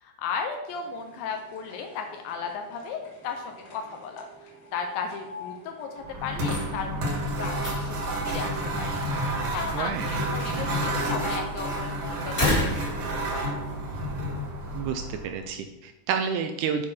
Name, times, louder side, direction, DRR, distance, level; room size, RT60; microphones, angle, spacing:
voice 1, 0.0-4.3 4.7-9.0 9.5-13.0 13.3-13.5, left 6 dB, 85° left, 3 dB, 2.4 m, -35 dB
sound 1, 0.6-8.9 9.3-10.1 10.8-11.0 11.2-11.3 11.6-11.7 12.6-12.7 13.3-13.4 14.0-14.1 14.6-14.7, left 2 dB, 55° left, 2.7 m, -48 dB
sound 2, 6.0-15.4, right 1 dB, 60° right, 2.6 m, -30 dB
sound 3, 6.3-13.8, left 1 dB, 30° left, 1.4 m, -34 dB
voice 2, 9.7-10.1 14.7-16.9, right 7 dB, 90° right, 6 dB, 1.7 m, -29 dB
8.4 x 4.9 x 4.2 m, 0.97 s
omnidirectional pair, 4.0 m